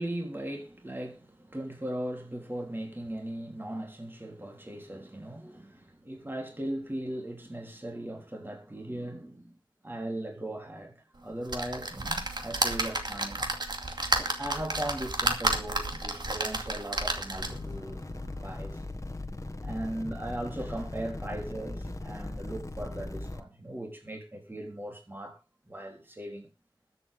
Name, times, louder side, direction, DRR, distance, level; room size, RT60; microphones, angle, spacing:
voice 1, 0.0-9.5 9.8-13.5 14.1-18.8 19.6-25.4 25.6-26.5, right 1 dB, 25° right, 3.3 m, -38 dB
sound 1, 11.5-17.7 18.3-18.4 18.6-18.7, right 2 dB, 60° right, 2.4 m, -31 dB
sound 2, 17.4-23.4, left 2 dB, 40° left, 1.4 m, -39 dB
21.5 x 8.0 x 3.6 m
wide cardioid pair, 70°, 8 cm